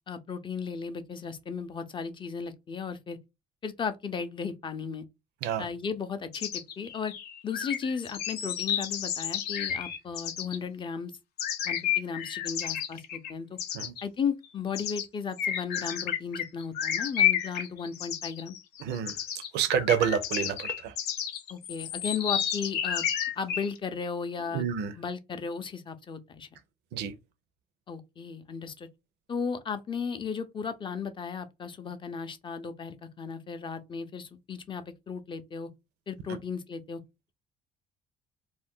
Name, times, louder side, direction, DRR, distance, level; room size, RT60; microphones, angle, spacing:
voice 1, 0.1-3.2 3.6-5.1 5.6-7.1 7.4-11.1 11.6-13.6 14.0-18.6 21.5-23.1 23.4-24.7 24.9-26.5 27.9-28.9 29.3-35.7 36.1-37.0, left 6 dB, 30° left, 0.5 m, -35 dB
sound 1, 6.3-10.6 11.4-13.3 13.6-14.0 14.7-15.1 15.4-23.8, left 9 dB, 75° left, 0.5 m, -31 dB
voice 2, 18.8-19.1 19.5-20.9 24.5-24.9 26.9-27.1, right 8 dB, 85° right, 0.5 m, -28 dB
2.4 x 2.2 x 3.6 m
cardioid pair, 110°, 17 cm